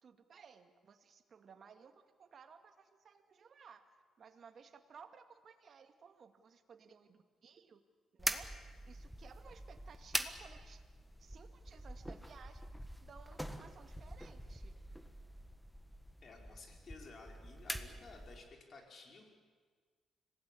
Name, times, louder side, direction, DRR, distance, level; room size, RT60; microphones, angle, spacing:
voice 1, 0.0-3.9 4.2-7.8 8.1-8.5 8.9-10.8 11.2-12.7 13.0-14.7, right 6 dB, 50° right, 7 dB, 2.1 m, -58 dB
sound 1, 8.2-18.5, equal, ahead, 1.5 m, -44 dB
voice 2, 16.2-19.3, left 3 dB, 45° left, 2 dB, 5.3 m, -55 dB
26.0 x 17.5 x 8.6 m, 1.5 s
cardioid pair, 90°, 0 cm